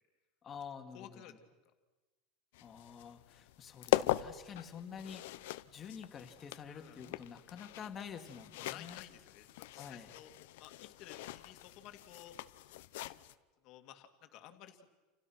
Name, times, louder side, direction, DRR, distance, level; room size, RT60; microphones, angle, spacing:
voice 1, 0.4-1.4 2.6-9.0 9.8-10.1, left 7 dB, 25° left, 5 dB, 2.5 m, -48 dB
voice 2, 0.9-1.3 6.7-7.0 8.6-10.3 10.6-12.4 13.6-14.9, left 11 dB, 45° left, 7 dB, 2.5 m, -54 dB
sound 1, 2.5-13.3, left 16 dB, 75° left, 0.9 m, -40 dB
29.5 x 29.0 x 6.2 m, 1.2 s
supercardioid pair, 160°, 0 cm